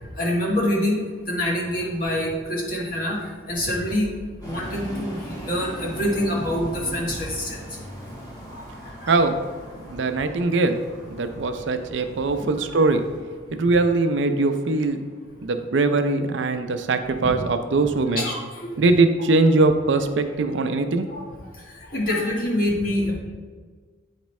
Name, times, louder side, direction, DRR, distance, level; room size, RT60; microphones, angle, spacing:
voice 1, 0.0-1.0 1.3-3.2 3.5-4.1 4.4-7.6 8.5-9.2 11.5-11.6 12.4-12.9 18.1-18.9 21.1-21.2 21.8-23.2, left 1 dB, 45° left, -3 dB, 1.4 m, -26 dB
sound 1, 4.4-13.2, equal, 20° left, 1.6 m, -40 dB
voice 2, 9.9-10.8 11.1-13.0 13.5-15.0 15.4-18.2 18.8-21.1, right 3 dB, 75° right, 8 dB, 0.5 m, -21 dB
7.9 x 4.4 x 3.1 m, 1.5 s
head